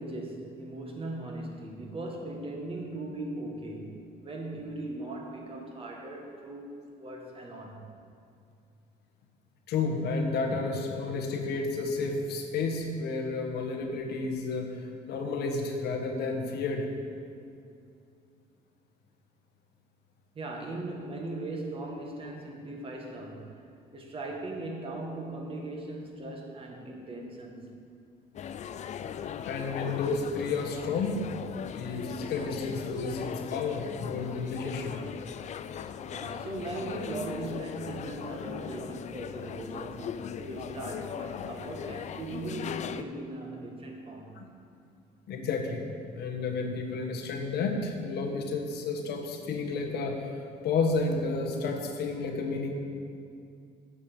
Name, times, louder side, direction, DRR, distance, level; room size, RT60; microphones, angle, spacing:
voice 1, 0.0-7.9 20.3-23.6 23.9-27.8 36.1-44.4, right 2 dB, 35° right, 0 dB, 1.8 m, -39 dB
voice 2, 9.7-16.9 29.4-31.2 31.5-34.9 41.4-41.5 44.3-44.5 45.3-45.8 46.1-52.7, left 4 dB, 75° left, 3 dB, 1.4 m, -31 dB
sound 1, 28.3-43.0, left 8 dB, 45° left, 0.4 m, -39 dB
8.9 x 6.2 x 7.0 m, 2.4 s
cardioid pair, 110°, 17 cm